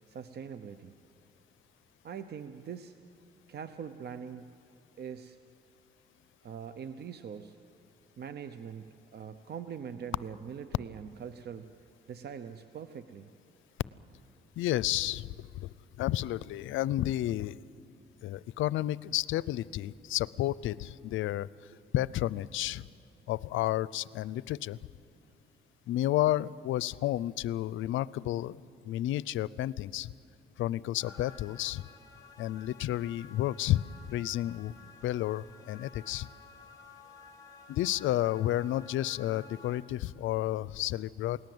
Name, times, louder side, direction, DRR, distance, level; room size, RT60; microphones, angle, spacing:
voice 1, 0.1-0.9 2.0-3.0 3.5-4.5 5.0-5.4 6.4-7.6 8.2-11.8 12.1-13.3, right 7 dB, 55° right, 11 dB, 0.8 m, -42 dB
voice 2, 14.6-17.6 18.2-22.8 23.3-24.8 25.9-30.1 30.6-31.9 32.4-36.3 37.7-41.4, left 14 dB, 80° left, 20 dB, 0.5 m, -31 dB
sound 1, 31.0-39.8, left 4 dB, 15° left, 2.8 m, -53 dB
28.0 x 18.5 x 7.9 m, 2.4 s
cardioid pair, 90°, 20 cm